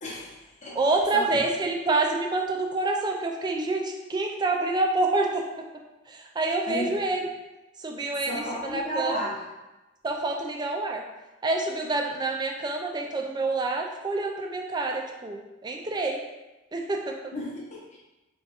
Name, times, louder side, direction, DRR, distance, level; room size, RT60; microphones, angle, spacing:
voice 1, 0.0-0.8 1.1-1.4 6.7-6.9 8.3-9.4 17.3-18.0, equal, 35° left, -5 dB, 0.9 m, -33 dB
voice 2, 0.8-5.4 6.1-7.3 7.8-8.4 8.7-9.3 10.0-11.0 11.4-16.2 16.7-17.3, right 2 dB, 20° right, 2 dB, 0.4 m, -27 dB
3.5 x 2.4 x 4.1 m, 1.0 s
head